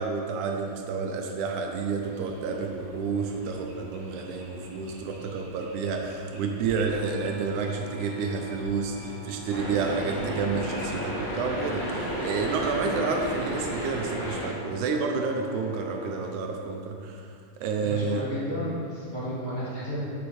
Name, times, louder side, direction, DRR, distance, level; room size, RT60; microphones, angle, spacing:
voice 1, 0.0-17.3 17.6-18.2, right 4 dB, 80° right, 3 dB, 1.9 m, -30 dB
sound 1, 1.9-14.3, right 1 dB, 60° right, 2.4 m, -48 dB
sound 2, 6.9-16.3, left 6 dB, 80° left, 1.5 m, -46 dB
sound 3, 9.5-14.5, equal, 60° left, 2.5 m, -32 dB
voice 2, 17.8-20.0, equal, 25° left, -10 dB, 1.1 m, -32 dB
7.4 x 7.1 x 3.1 m, 2.4 s
omnidirectional pair, 3.8 m